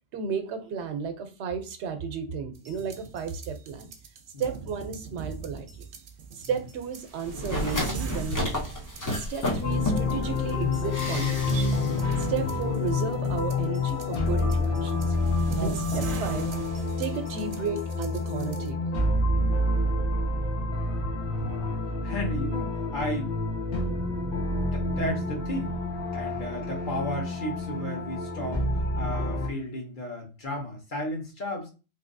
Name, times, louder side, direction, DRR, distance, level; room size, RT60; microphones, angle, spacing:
voice 1, 0.1-3.9 4.4-5.8 6.3-8.6 9.0-11.8 12.2-15.0 15.6-16.5 17.0-18.9, right 6 dB, 85° right, 0.9 m, -33 dB
sound 1, 2.6-18.7, right 5 dB, 60° right, 0.7 m, -38 dB
sound 2, 7.2-10.3 10.9-12.0 12.2-12.3, left 1 dB, 25° left, 0.5 m, -31 dB
sound 3, 9.6-29.5, left 2 dB, 85° left, 1.2 m, -28 dB
voice 2, 21.4-21.7 22.0-23.3 24.6-25.8 26.1-31.7, left 1 dB, 50° left, 1.0 m, -34 dB
3.3 x 2.6 x 2.5 m
omnidirectional pair, 1.1 m